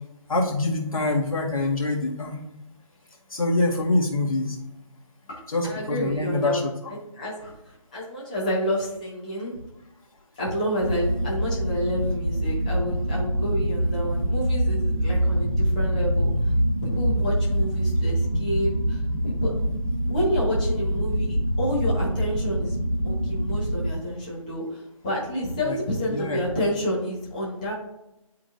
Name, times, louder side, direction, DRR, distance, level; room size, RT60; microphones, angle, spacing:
voice 1, 0.3-2.4 3.3-4.6 5.5-6.7 25.6-25.8 26.1-26.5, left 2 dB, 85° left, -1 dB, 1.9 m, -25 dB
voice 2, 5.3-6.7 7.1-9.6 10.4-16.3 16.8-19.5 20.1-22.7 23.0-27.7, equal, 15° left, -6 dB, 1.2 m, -29 dB
sound 1, 10.8-23.9, equal, 40° right, 1.7 m, -25 dB
11.0 x 3.8 x 2.5 m, 0.92 s
hypercardioid pair, 175°, 18 cm